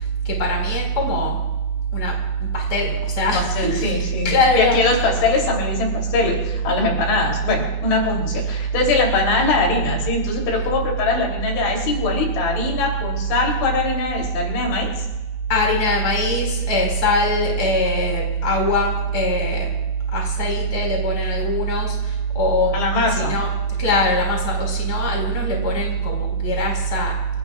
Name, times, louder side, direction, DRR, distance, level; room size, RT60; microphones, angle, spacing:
voice 1, 0.2-1.4 1.9-2.1 2.4-3.9 4.2-4.8 15.5-19.7 20.1-22.8 23.1-23.5 23.8-27.1, equal, 20° left, 0 dB, 4.6 m, -21 dB
voice 2, 3.3-4.3 4.6-14.9 22.7-23.3, left 3 dB, 70° left, -1 dB, 5.5 m, -22 dB
29.0 x 18.5 x 2.4 m, 1.1 s
omnidirectional pair, 5.6 m